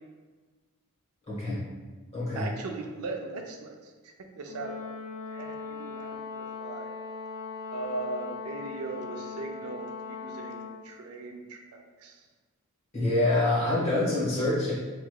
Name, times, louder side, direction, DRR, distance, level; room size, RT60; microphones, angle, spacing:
voice 1, 1.3-1.6 2.1-2.5 12.9-14.7, left 2 dB, 30° left, -7 dB, 1.0 m, -26 dB
voice 2, 2.3-3.7 4.0-4.7 5.3-5.5 5.9-6.1 6.3-6.9 7.7-12.2, right 3 dB, 80° right, 3 dB, 0.4 m, -38 dB
Brass instrument, 4.5-10.9, left 4 dB, 85° left, 0.6 m, -39 dB
3.1 x 2.8 x 2.3 m, 1.3 s
head